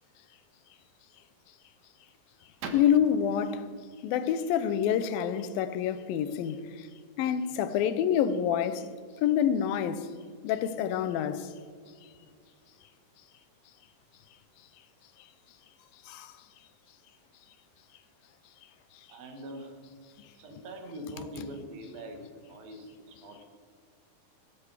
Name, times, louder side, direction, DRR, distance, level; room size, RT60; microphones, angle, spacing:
voice 1, 2.7-3.6 4.0-6.6 7.2-8.9 9.2-10.1 10.4-11.5 16.1-16.3, left 9 dB, 90° left, 2.6 m, -27 dB
voice 2, 19.1-19.8 20.4-23.5, right 1 dB, 80° right, 3.5 m, -42 dB
15.0 x 13.0 x 4.9 m
omnidirectional pair, 4.0 m